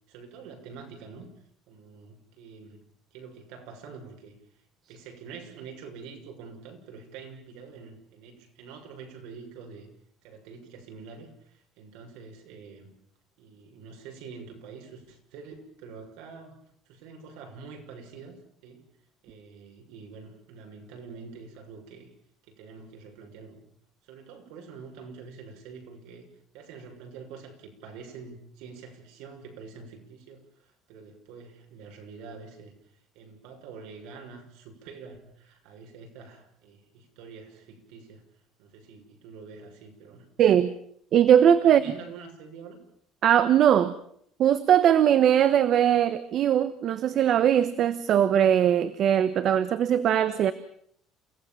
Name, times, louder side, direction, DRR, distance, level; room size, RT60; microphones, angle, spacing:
voice 1, 0.1-1.3 1.7-2.8 3.1-9.9 10.2-12.9 13.4-16.6 16.9-18.4 18.6-18.9 19.2-22.1 22.5-23.6 24.0-26.2 26.5-38.2 38.6-40.3 41.6-42.8, right 5 dB, 85° right, 3 dB, 6.6 m, -46 dB
voice 2, 40.4-40.7 41.1-41.8 43.2-43.9 44.4-50.5, right 9 dB, 40° right, 13 dB, 1.0 m, -20 dB
28.5 x 17.0 x 7.4 m, 0.69 s
cardioid pair, 165°, 0 cm